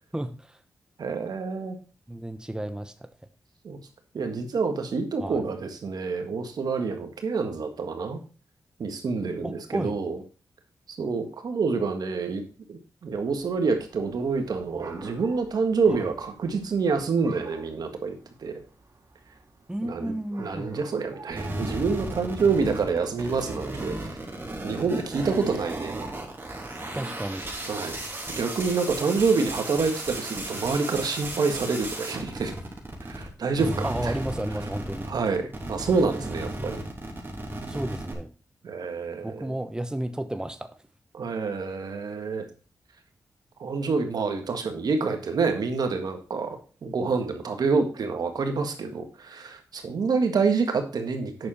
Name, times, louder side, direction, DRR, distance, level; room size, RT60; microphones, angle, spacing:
voice 1, 0.1-0.6 2.1-3.1 5.2-5.4 9.4-10.0 19.7-20.7 26.9-27.5 33.6-35.1 37.7-38.3 39.2-40.8, right 1 dB, 10° right, 9 dB, 0.9 m, -32 dB
voice 2, 1.0-1.8 3.6-3.8 4.1-8.2 8.8-10.2 10.9-12.4 12.7-18.6 19.8-20.1 20.4-24.2 24.6-26.0 27.7-28.0 28.3-32.5 33.1-34.1 35.1-36.8 38.6-39.5 41.1-42.4 43.6-51.5, right 4 dB, 75° right, 6 dB, 1.7 m, -27 dB
sound 1, 13.1-27.9, right 3 dB, 55° right, 3.3 m, -49 dB
sound 2, 21.3-33.3 33.5-38.1, right 1 dB, 30° right, 3.4 m, -35 dB
8.7 x 6.6 x 4.3 m, 0.36 s
cardioid pair, 55°, 7 cm